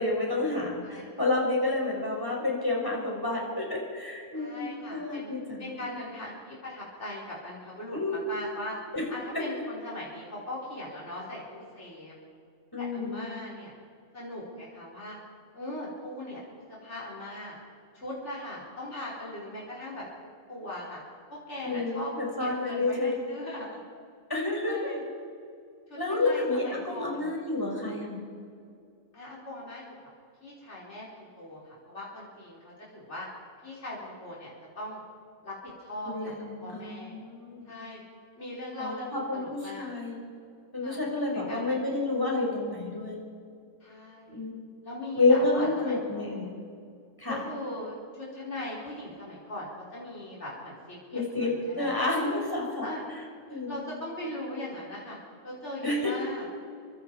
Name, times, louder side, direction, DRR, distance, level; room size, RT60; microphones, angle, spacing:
voice 1, 0.0-5.7 7.9-8.2 8.9-9.0 9.3-9.4 12.7-13.3 21.6-23.1 24.3-24.9 26.0-28.2 36.0-37.7 38.8-40.2 40.7-43.2 44.3-44.7 45.2-46.5 47.2-47.4 51.1-52.9 53.5-53.8 55.8-56.1, left 2 dB, 15° left, -2 dB, 5.7 m, -29 dB
voice 2, 0.8-1.2 4.3-5.3 5.6-8.8 9.1-12.1 12.8-13.7 14.1-15.2 15.5-17.6 17.9-20.1 20.5-21.0 21.3-22.1 22.4-23.8 24.7-25.0 25.9-27.3 29.1-29.9 30.4-33.3 33.6-35.0 35.4-36.3 36.6-37.2 37.7-38.0 38.4-39.9 40.8-41.0 41.3-41.8 43.8-44.4 44.8-46.4 47.3-52.0 52.8-53.0 53.5-55.2 55.4-56.4, left 1 dB, 65° left, -6 dB, 4.7 m, -40 dB
29.0 x 24.0 x 4.7 m, 2.4 s
omnidirectional pair, 1.3 m